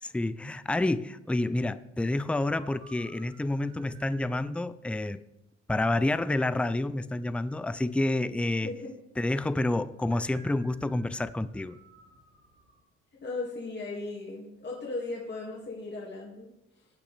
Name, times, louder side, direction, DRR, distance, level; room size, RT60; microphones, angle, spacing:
voice 1, 0.0-5.2 5.7-8.7 9.2-11.8, left 2 dB, 5° left, 0.4 m, -29 dB
sound 1, 2.5-4.4 10.1-12.8, right 3 dB, 70° right, 4.9 m, -55 dB
voice 2, 8.6-8.9 13.2-16.5, left 3 dB, 35° left, 2.4 m, -37 dB
16.0 x 8.8 x 3.4 m
cardioid pair, 90°, 30 cm